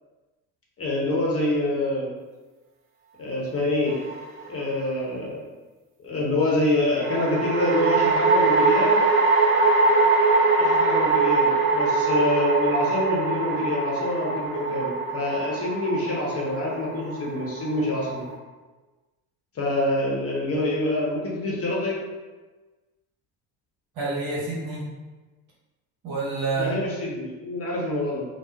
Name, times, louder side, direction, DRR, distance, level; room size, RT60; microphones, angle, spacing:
voice 1, 0.8-2.1 3.2-4.0 4.5-5.4 6.0-9.0 10.6-18.2 19.5-22.0 26.6-28.3, left 1 dB, 35° left, -4 dB, 0.8 m, -26 dB
sound 1, 3.9-4.6 7.0-18.3, right 3 dB, 30° right, 0.5 m, -22 dB
voice 2, 23.9-24.9 26.0-26.8, right 3 dB, 60° right, -4 dB, 1.0 m, -29 dB
2.8 x 2.0 x 2.3 m, 1.3 s
hypercardioid pair, 75°, 41 cm